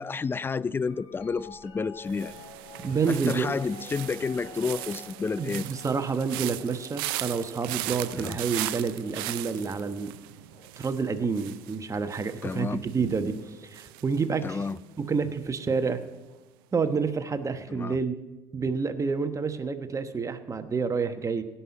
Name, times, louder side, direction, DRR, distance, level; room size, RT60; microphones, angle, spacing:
voice 1, 0.0-2.3 3.1-5.7 8.1-8.4 12.4-12.8 14.4-14.8 17.7-18.0, left 4 dB, 20° left, 0.3 m, -30 dB
sound 1, 0.8-10.9 11.9-12.3 13.0-14.0 15.8-15.9, left 5 dB, 60° left, 2.5 m, -50 dB
sound 2, 2.1-15.1 15.4-15.8, right 17 dB, 75° right, 0.5 m, -39 dB
voice 2, 2.8-3.5 5.4-10.1 10.8-14.6 15.0-16.0 16.7-18.2 18.5-21.4, right 5 dB, 25° right, 1.1 m, -29 dB
17.0 x 5.7 x 7.6 m
hypercardioid pair, 65°, 12 cm